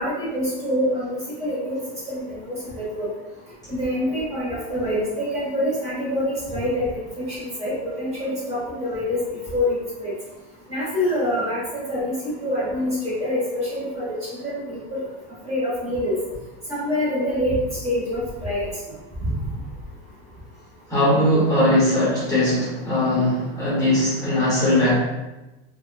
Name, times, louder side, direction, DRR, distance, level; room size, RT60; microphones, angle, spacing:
voice 1, 0.0-1.8 2.1-3.1 3.7-9.2 9.5-10.1 10.7-15.0 15.4-16.2 16.7-17.6 17.8-18.7 19.2-19.4, left 1 dB, 20° right, -7 dB, 0.8 m, -26 dB
voice 2, 20.9-25.0, left 1 dB, 10° left, -9 dB, 0.7 m, -20 dB
2.5 x 2.2 x 2.4 m, 1.0 s
supercardioid pair, 160°, 29 cm